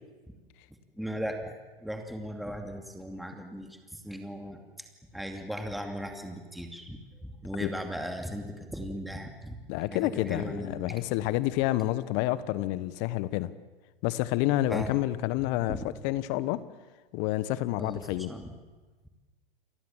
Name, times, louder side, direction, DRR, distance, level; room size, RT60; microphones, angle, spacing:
voice 1, 1.0-4.6 5.1-9.6 9.9-10.9 14.7-14.9 15.7-15.8 17.8-18.5, equal, ahead, 4 dB, 2.6 m, -37 dB
voice 2, 9.7-13.5 14.0-16.7 17.1-18.3, left 16 dB, 35° left, 16 dB, 1.2 m, -29 dB
29.5 x 23.0 x 7.4 m, 1.3 s
hypercardioid pair, 110°, 29 cm